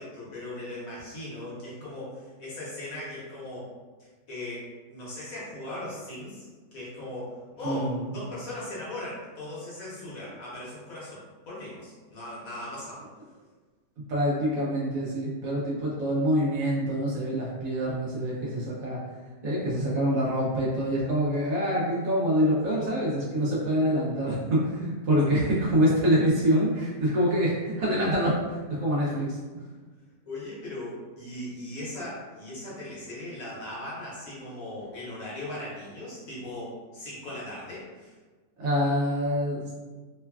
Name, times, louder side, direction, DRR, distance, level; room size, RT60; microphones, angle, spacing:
voice 1, 0.0-3.7 4.3-13.1 30.3-38.1, left 1 dB, 60° left, -7 dB, 1.1 m, -38 dB
voice 2, 7.6-8.0 14.1-19.0 19.4-29.4 38.6-39.7, equal, 65° right, -6 dB, 0.9 m, -25 dB
3.1 x 2.2 x 2.2 m, 1.3 s
omnidirectional pair, 1.8 m